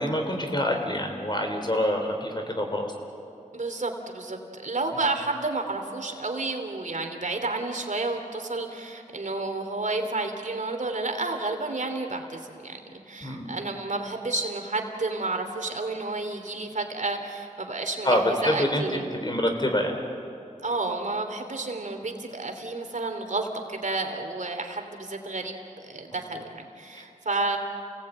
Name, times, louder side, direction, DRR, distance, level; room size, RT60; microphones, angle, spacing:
voice 1, 0.0-2.9 4.9-5.0 13.2-13.5 18.0-20.0 26.9-27.0, left 1 dB, 30° left, 3 dB, 3.8 m, -26 dB
voice 2, 3.5-12.8 13.1-19.0 20.6-27.6, right 3 dB, 65° right, 4 dB, 2.8 m, -31 dB
29.5 x 18.0 x 8.9 m, 2.7 s
wide cardioid pair, 70°, 14 cm